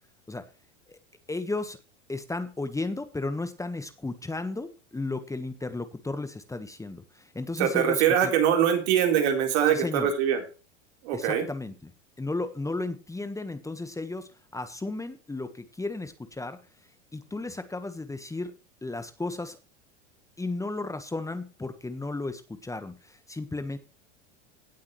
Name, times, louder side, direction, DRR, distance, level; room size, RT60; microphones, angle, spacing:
voice 1, 1.3-1.8 2.1-8.3 9.7-10.1 11.1-11.9 12.2-16.6 17.1-18.5 18.8-19.6 20.4-23.8, left 2 dB, 10° left, 10 dB, 1.4 m, -34 dB
voice 2, 7.6-10.4 11.0-11.5, right 9 dB, 65° right, 3 dB, 4.3 m, -23 dB
17.5 x 8.0 x 3.2 m, 0.35 s
hypercardioid pair, 100°, 35 cm